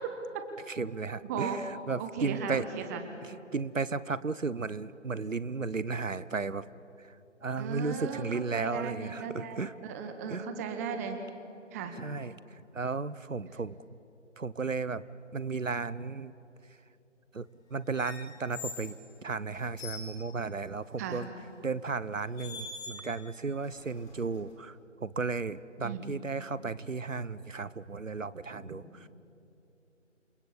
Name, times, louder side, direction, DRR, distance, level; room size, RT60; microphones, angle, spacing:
voice 1, 0.7-2.7 3.5-6.6 7.4-9.7 10.3-10.4 12.0-12.3 12.7-13.8 14.4-15.0 15.3-16.3 17.3-18.9 19.2-21.3 21.6-24.8 25.0-28.8, right 4 dB, 90° right, 17 dB, 1.0 m, -34 dB
voice 2, 1.3-1.6 2.0-3.0 7.6-8.3 8.5-11.2 11.7-12.0 21.0-21.2 25.8-26.1 28.5-28.6, right 6 dB, 15° right, 6 dB, 1.2 m, -36 dB
sound 1, 17.9-19.0 19.5-20.1 21.5-21.7 22.4-23.2 23.6-24.5, left 4 dB, 10° left, 2.1 m, -44 dB
28.0 x 21.0 x 8.5 m, 3.0 s
figure-of-eight pair, 150°, 37 cm